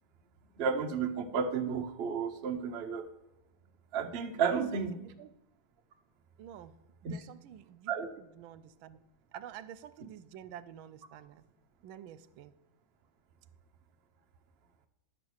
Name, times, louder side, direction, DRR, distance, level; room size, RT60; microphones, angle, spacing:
voice 1, 0.6-3.1 3.9-5.0 7.0-7.2 7.9-8.1, right 6 dB, 55° right, 6 dB, 0.7 m, -32 dB
voice 2, 4.5-5.3 6.4-6.7 7.0-9.0 9.3-11.4 11.8-12.5, right 10 dB, 80° right, 15 dB, 1.4 m, -49 dB
11.5 x 7.1 x 6.3 m, 0.88 s
omnidirectional pair, 2.2 m